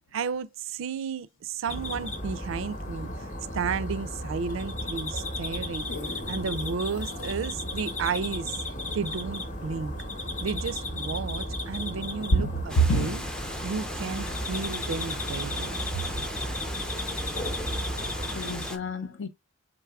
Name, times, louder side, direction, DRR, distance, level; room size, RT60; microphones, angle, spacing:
voice 1, 0.1-3.3 3.5-5.9 6.3-8.6 8.9-9.9 10.4-13.2 13.6-16.0, right 5 dB, 65° right, 0.4 m, -33 dB
sound 1, 1.7-18.7, left 1 dB, 35° left, 0.8 m, -34 dB
sound 2, 5.9-10.2 10.7-10.8, left 2 dB, 90° left, 1.3 m, -45 dB
voice 2, 12.3-13.1 18.4-19.3, right 2 dB, 60° left, 0.6 m, -26 dB
Water, 12.7-18.8, equal, 5° left, 0.4 m, -38 dB
4.6 x 3.9 x 2.3 m
head